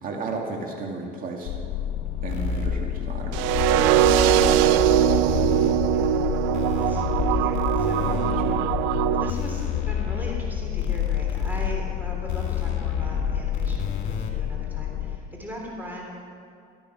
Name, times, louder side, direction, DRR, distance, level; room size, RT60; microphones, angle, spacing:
voice 1, 0.0-1.6 2.2-5.0 8.0-8.6, right 3 dB, 45° right, 0 dB, 2.2 m, -34 dB
sound 1, 1.5-15.2, left 11 dB, 80° left, 1.1 m, -30 dB
sound 2, 2.3-2.7 3.5-4.5 4.8-5.7 6.5-8.7 9.3-10.4 10.8-11.7 12.3-14.3, left 7 dB, 55° left, 2.4 m, -30 dB
sound 3, 3.3-9.3, right 12 dB, 80° right, 0.5 m, -21 dB
voice 2, 6.7-8.0 9.1-16.0, equal, 10° right, -2 dB, 3.4 m, -38 dB
13.5 x 13.0 x 6.1 m, 2.4 s
supercardioid pair, 100°, 19 cm